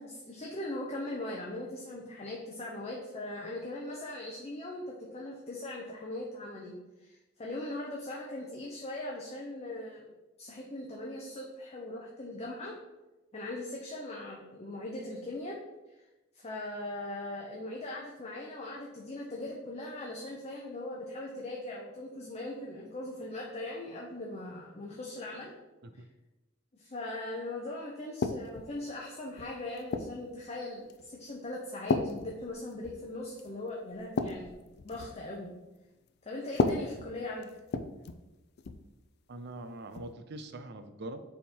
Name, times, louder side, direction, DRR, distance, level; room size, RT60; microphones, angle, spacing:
voice 1, 0.0-10.1 10.4-12.8 13.3-15.6 15.9-16.0 16.3-25.5 25.9-26.0 26.7-35.6 36.2-37.5, left 1 dB, 35° left, -2 dB, 0.8 m, -40 dB
sound 1, 28.2-28.7 29.4-30.2 30.9-31.2 31.9-33.1 33.4-33.5 33.9-35.2 36.5-38.3 38.6-38.9 39.9-40.1, left 3 dB, 55° left, 0.4 m, -33 dB
voice 2, 39.3-41.2, right 2 dB, 60° right, 9 dB, 0.6 m, -43 dB
7.2 x 3.7 x 4.4 m, 1.1 s
head